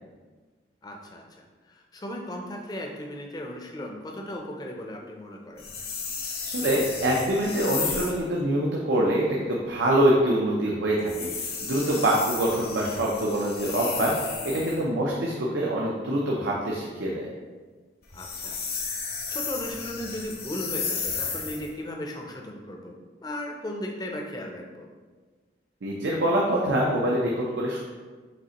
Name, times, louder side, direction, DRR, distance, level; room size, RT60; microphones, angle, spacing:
voice 1, 0.8-5.7 12.3-12.7 18.1-18.6 18.9-23.0 23.2-24.9, left 1 dB, 20° left, 1 dB, 0.5 m, -36 dB
sound 1, 5.6-8.2 11.0-14.8 18.0-21.7, left 5 dB, 55° left, 0.7 m, -33 dB
voice 2, 6.4-11.3 11.6-17.3 25.8-27.8, right 1 dB, 85° right, -3 dB, 0.6 m, -25 dB
5.2 x 3.2 x 2.9 m, 1.4 s
head